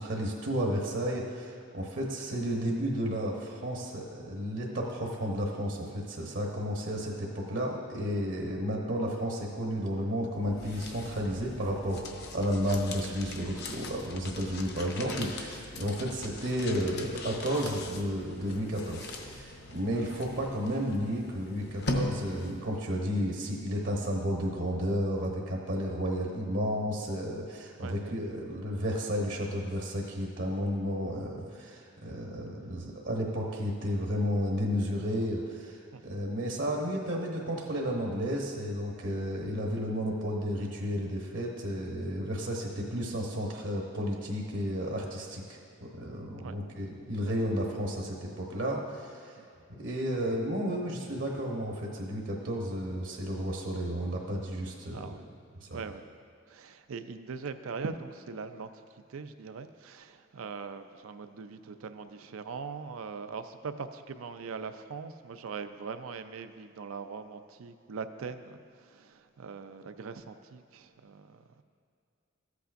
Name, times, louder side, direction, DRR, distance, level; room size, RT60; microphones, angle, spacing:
voice 1, 0.0-35.8 36.0-49.3 49.7-55.1 55.6-55.8, equal, 65° right, -1 dB, 1.0 m, -32 dB
sound 1, 10.2-22.8, left 2 dB, 50° left, 0.7 m, -40 dB
voice 2, 27.8-28.2 35.9-36.2 46.4-46.6 49.4-49.5 52.7-52.8 54.9-55.3 55.7-56.1 56.5-71.4, right 5 dB, 80° right, 9 dB, 0.4 m, -41 dB
14.0 x 8.2 x 2.5 m, 2.4 s
head